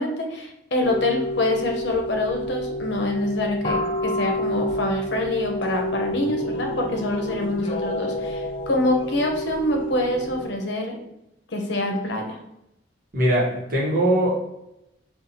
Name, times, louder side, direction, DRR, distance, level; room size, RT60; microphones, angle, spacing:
voice 1, 0.0-11.0 11.5-12.4, left 1 dB, 70° left, 2 dB, 0.7 m, -25 dB
sound 1, 0.8-10.4, left 1 dB, 25° left, 0.5 m, -29 dB
voice 2, 13.1-14.4, right 1 dB, 45° right, -4 dB, 1.1 m, -21 dB
5.5 x 2.3 x 2.7 m, 0.86 s
head